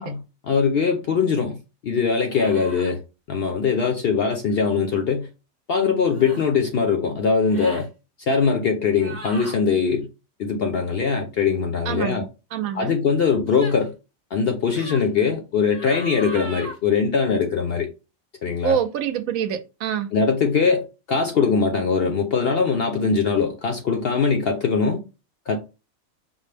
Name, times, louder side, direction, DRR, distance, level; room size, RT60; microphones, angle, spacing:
voice 1, 0.0-1.6 1.8-3.0 3.3-5.3 5.7-7.9 8.3-10.1 10.4-12.3 12.7-13.9 14.3-17.9 18.4-18.8 20.1-25.0 25.5-25.6, left 5 dB, 60° left, 0.6 m, -21 dB
sound 1, 2.2-2.9 4.5-4.7 6.0-6.5 7.4-7.9 8.9-9.5 13.5-13.9 14.6-15.1 15.7-16.8, right 1 dB, 35° right, 1.0 m, -38 dB
voice 2, 11.9-12.9 18.6-20.1, right 8 dB, 75° right, 1.0 m, -26 dB
5.4 x 2.1 x 3.2 m
omnidirectional pair, 1.5 m